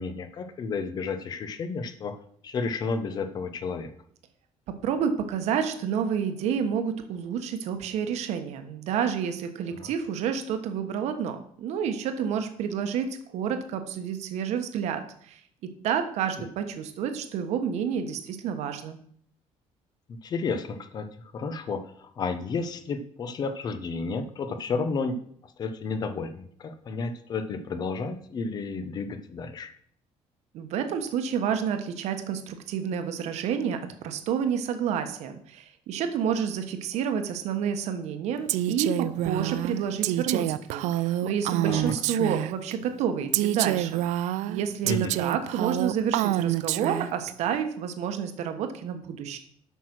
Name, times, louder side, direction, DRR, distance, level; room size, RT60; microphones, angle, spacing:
voice 1, 0.0-2.2 2.4-3.9 9.7-9.9 20.2-29.7 41.6-41.9 44.8-45.1, left 4 dB, 35° left, 10 dB, 0.8 m, -32 dB
voice 2, 4.7-15.4 15.8-19.0 30.5-49.4, right 7 dB, 65° right, 7 dB, 1.3 m, -29 dB
Female speech woman speaking, 38.5-42.7 43.3-47.3, right 14 dB, 80° right, 0.4 m, -27 dB
9.3 x 6.1 x 6.1 m, 0.63 s
cardioid pair, 175°, 12 cm